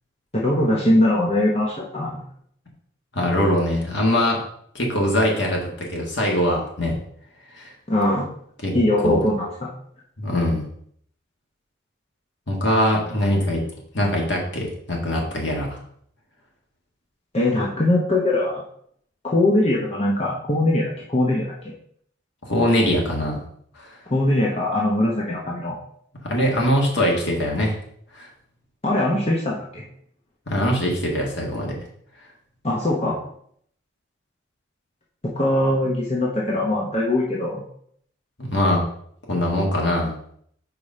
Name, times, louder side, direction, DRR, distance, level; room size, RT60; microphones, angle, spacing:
voice 1, 0.3-2.2 7.9-8.3 8.7-9.7 17.3-18.6 19.2-21.7 24.1-25.8 28.8-29.8 32.6-33.2 35.3-37.6, left 1 dB, 30° left, -4 dB, 0.9 m, -21 dB
voice 2, 3.1-4.4 4.7-7.0 7.5-7.7 8.6-8.8 9.0-9.2 10.2-10.6 12.5-13.6 13.9-15.8 22.4-23.4 23.8-23.9 26.2-27.8 28.1-28.3 30.5-31.8 38.4-38.8 39.3-40.1, left 1 dB, 65° left, -1 dB, 1.8 m, -22 dB
5.0 x 4.5 x 5.4 m, 0.66 s
head